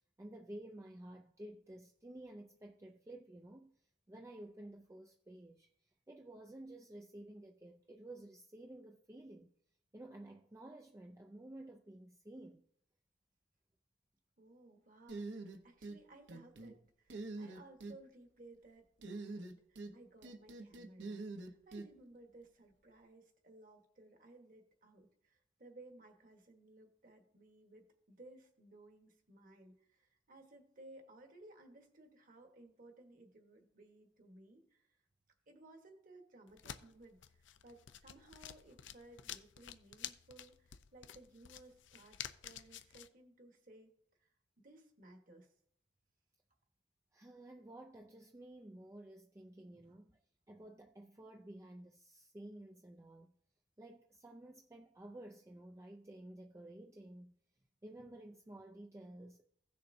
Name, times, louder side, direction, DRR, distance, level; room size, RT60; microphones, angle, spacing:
voice 1, 0.2-3.8 4.1-9.5 9.9-12.7 47.1-53.3 53.8-57.3 57.8-59.4, right 1 dB, 15° right, 0.4 m, -53 dB
voice 2, 14.4-34.9 35.5-43.9 44.2-44.3 44.6-45.5 49.9-50.0, right 2 dB, 45° right, 1.3 m, -59 dB
sound 1, 15.1-16.0 16.3-16.7 17.1-18.0 19.0-19.9 20.2-21.9, right 3 dB, 75° right, 0.9 m, -45 dB
sound 2, 36.5-43.1, left 10 dB, 80° left, 0.5 m, -50 dB
16.5 x 6.7 x 2.6 m
head